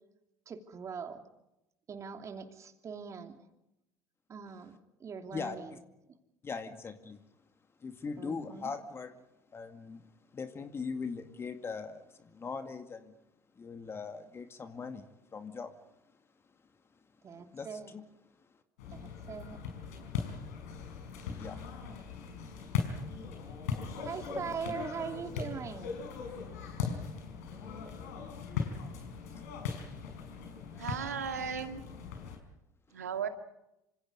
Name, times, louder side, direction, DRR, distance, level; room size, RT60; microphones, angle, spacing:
voice 1, 0.5-1.2 1.9-3.4 4.3-5.8 8.2-8.7 17.2-17.9 18.9-19.6 24.0-25.9, right 6 dB, 35° right, 2.9 m, -42 dB
voice 2, 5.3-5.8 6.4-7.2 7.8-9.1 9.5-10.1 10.3-13.1 13.6-15.7 17.5-18.0 21.4-21.7 27.5-27.6 29.3-29.5 30.3-31.1, left 5 dB, 30° left, 2.2 m, -41 dB
sound 1, 18.8-32.4, left 6 dB, 75° left, 4.9 m, -39 dB
voice 3, 30.8-31.8 32.9-33.3, right 7 dB, 85° right, 2.0 m, -35 dB
27.5 x 26.0 x 5.5 m
figure-of-eight pair, 65°, 8 cm